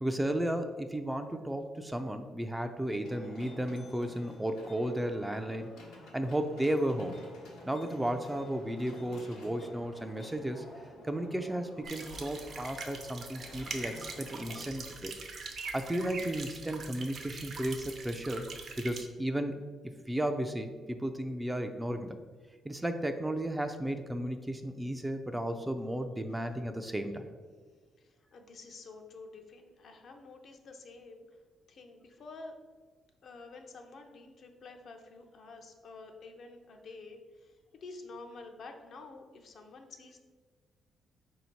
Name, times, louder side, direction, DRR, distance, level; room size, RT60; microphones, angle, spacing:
voice 1, 0.0-5.9 6.1-7.2 7.7-10.7 11.0-15.3 15.6-18.5 18.8-19.6 20.1-22.2 22.6-27.3, right 1 dB, 10° right, 7 dB, 0.4 m, -34 dB
sound 1, 3.0-14.6, left 2 dB, 90° left, 0.9 m, -50 dB
sound 2, 11.8-19.0, right 4 dB, 55° right, 0.6 m, -43 dB
voice 2, 26.3-26.7 28.0-31.3 31.7-32.5 33.2-40.2, left 3 dB, 60° left, 4 dB, 0.6 m, -49 dB
4.4 x 2.7 x 4.3 m, 1.5 s
cardioid pair, 90°, 0 cm